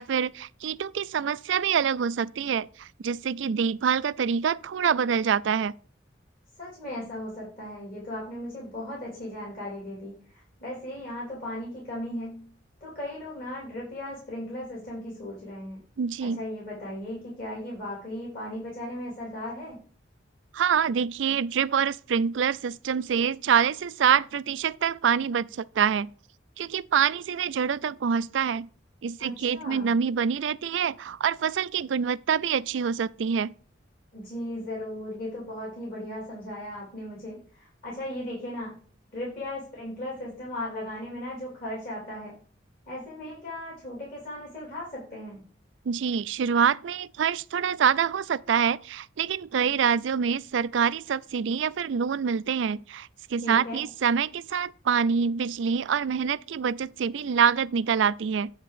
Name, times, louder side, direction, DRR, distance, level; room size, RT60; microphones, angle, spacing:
voice 1, 0.0-5.7 16.0-16.4 20.5-26.1 26.6-28.7 29.0-33.5 45.9-58.5, right 7 dB, 75° right, 0.4 m, -26 dB
voice 2, 6.6-12.5 12.8-15.8 16.3-19.8 29.2-29.9 34.1-38.8 39.1-42.3 42.9-45.4 53.4-53.9, left 1 dB, 50° left, 3.5 m, -37 dB
9.7 x 3.6 x 6.7 m
head